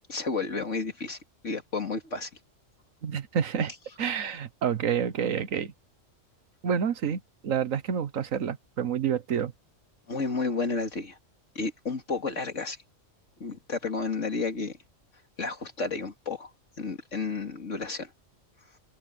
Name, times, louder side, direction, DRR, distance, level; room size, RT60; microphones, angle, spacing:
voice 1, 0.1-1.2 1.4-2.3 10.1-11.2 11.5-12.8 13.4-14.8 15.4-16.5 16.8-18.1, left 4 dB, 70° left, 3.0 m, -31 dB
voice 2, 3.0-3.7 4.0-5.7 6.6-9.5, right 7 dB, 85° right, 1.5 m, -28 dB
open air
omnidirectional pair, 1.3 m